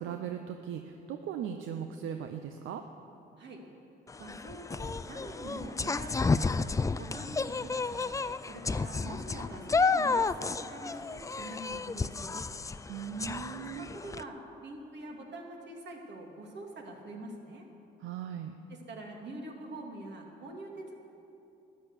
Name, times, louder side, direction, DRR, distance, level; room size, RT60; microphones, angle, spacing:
voice 1, 0.0-2.8 12.9-13.9 18.0-18.5, right 8 dB, 80° right, 6 dB, 0.7 m, -38 dB
sound 1, 4.1-14.2, left 4 dB, 15° left, 0.3 m, -32 dB
voice 2, 4.2-6.5 7.0-8.1 8.4-12.4 13.6-17.7 18.7-20.9, right 1 dB, 60° right, 1 dB, 2.6 m, -44 dB
13.0 x 10.5 x 8.2 m, 2.8 s
cardioid pair, 90°, 20 cm